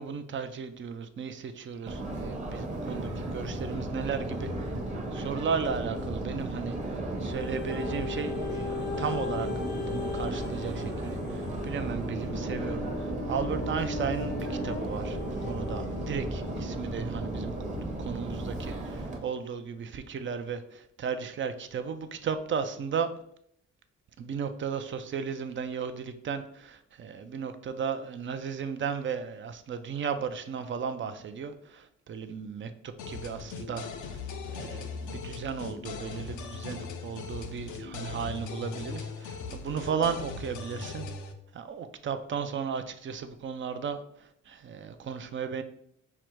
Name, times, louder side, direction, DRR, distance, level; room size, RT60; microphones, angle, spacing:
voice 1, 0.0-4.7 5.1-6.8 7.2-17.5 18.0-23.1 24.2-41.1 41.5-45.6, right 6 dB, 40° right, 9 dB, 0.5 m, -35 dB
Subway metro underground, 1.9-19.2, right 1 dB, 25° right, 0.9 m, -34 dB
sound 1, 7.2-16.3 17.0-17.1, left 5 dB, 35° left, 0.4 m, -39 dB
sound 2, 33.0-41.3, left 5 dB, 75° left, 0.6 m, -39 dB
4.7 x 2.1 x 4.5 m, 0.70 s
cardioid pair, 90°, 30 cm